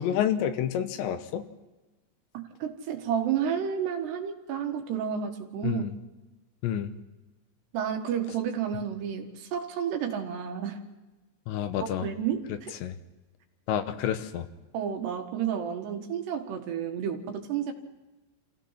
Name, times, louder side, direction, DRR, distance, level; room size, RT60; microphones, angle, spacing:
voice 1, 0.0-1.5 5.6-6.0 6.6-7.0 11.5-12.1 12.8-13.0 13.7-14.5, left 10 dB, 80° left, 9 dB, 3.2 m, -29 dB
voice 2, 2.3-5.8 7.7-10.8 12.0-12.7 14.7-17.7, right 8 dB, 70° right, 4 dB, 3.6 m, -31 dB
28.0 x 16.5 x 5.8 m, 1.1 s
omnidirectional pair, 5.2 m